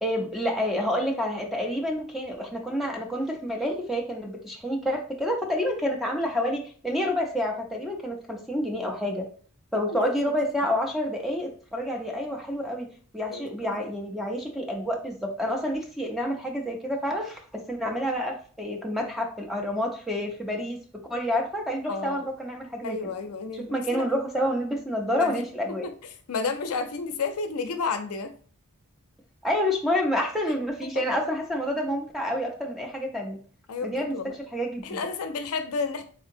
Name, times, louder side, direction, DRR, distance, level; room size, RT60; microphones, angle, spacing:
voice 1, 0.0-9.3 9.7-12.9 13.1-20.8 21.1-23.1 23.5-25.9 29.4-33.4 33.8-35.0, equal, ahead, 0.4 m, -28 dB
voice 2, 9.9-10.3 13.3-13.7 21.9-22.3 22.8-24.1 25.2-25.4 25.8-25.9 26.3-28.3 33.7-34.4 34.8-36.0, left 4 dB, 80° left, 0.5 m, -31 dB
3.6 x 2.8 x 2.5 m
head